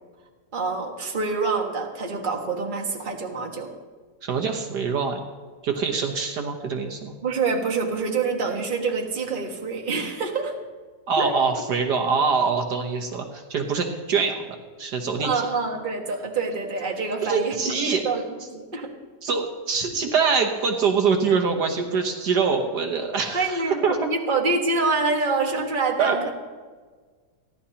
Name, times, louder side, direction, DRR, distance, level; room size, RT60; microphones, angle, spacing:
voice 1, 0.5-3.7 7.2-10.5 11.2-11.4 15.2-18.2 18.5-18.9 23.3-26.3, right 4 dB, 30° right, 1 dB, 1.6 m, -26 dB
voice 2, 4.2-5.2 5.6-7.1 11.1-14.5 14.8-15.4 17.2-18.0 19.2-24.0 26.0-26.2, right 5 dB, 65° right, 3 dB, 1.6 m, -24 dB
30.0 x 11.5 x 2.9 m, 1.5 s
omnidirectional pair, 1.9 m